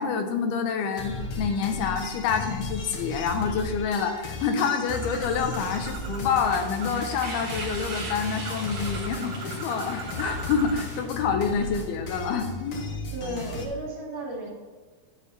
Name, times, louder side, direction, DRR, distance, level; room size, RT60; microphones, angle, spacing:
voice 1, 0.0-12.8, left 6 dB, 85° left, 6 dB, 2.9 m, -27 dB
sound 1, 1.0-13.7, left 2 dB, 60° left, 1.4 m, -36 dB
Bird, 4.9-11.0, right 6 dB, 85° right, 3.0 m, -40 dB
sound 2, 6.3-11.2, right 2 dB, 40° right, 3.1 m, -39 dB
voice 2, 13.1-14.5, right 1 dB, 60° right, -3 dB, 3.4 m, -34 dB
11.5 x 4.7 x 6.9 m, 1.4 s
omnidirectional pair, 4.4 m